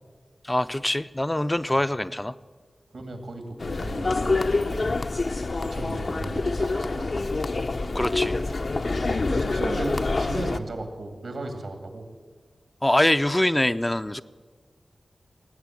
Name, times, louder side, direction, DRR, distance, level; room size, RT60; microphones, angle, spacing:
voice 1, 0.4-2.3 7.9-8.4 12.8-14.2, left 1 dB, 15° left, 12 dB, 0.4 m, -24 dB
voice 2, 2.9-4.9 5.6-7.3 8.9-12.1, right 2 dB, 80° right, 6 dB, 2.1 m, -36 dB
sound 1, 3.6-10.6, left 3 dB, 60° left, 0.7 m, -26 dB
19.0 x 8.2 x 7.7 m, 1.5 s
cardioid pair, 60°, 0 cm